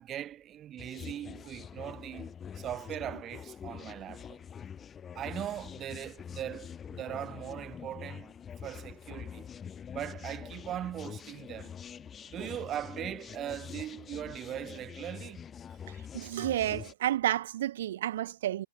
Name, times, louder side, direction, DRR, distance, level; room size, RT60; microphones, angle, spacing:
voice 1, 0.0-4.4 5.1-8.3 8.6-9.5 9.9-11.7 12.3-15.5, right 11 dB, 20° right, 1.7 m, -40 dB
sound 1, 0.8-16.9, left 7 dB, 15° left, 1.7 m, -45 dB
voice 2, 16.1-18.7, right 12 dB, 50° right, 0.6 m, -30 dB
figure-of-eight pair, 115°, 0 cm